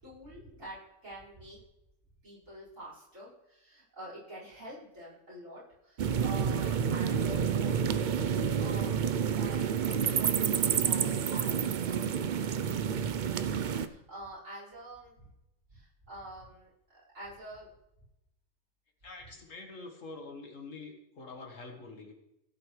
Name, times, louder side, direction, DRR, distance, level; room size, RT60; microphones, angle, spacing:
voice 1, 0.0-1.6 2.2-12.1 13.7-15.3 15.7-17.7, right 1 dB, 65° right, -7 dB, 5.5 m, -47 dB
sound 1, 6.0-13.9, right 7 dB, 85° right, 0.4 m, -29 dB
voice 2, 19.0-22.1, left 3 dB, 65° left, 3 dB, 1.8 m, -46 dB
16.0 x 8.7 x 3.2 m, 0.87 s
omnidirectional pair, 1.5 m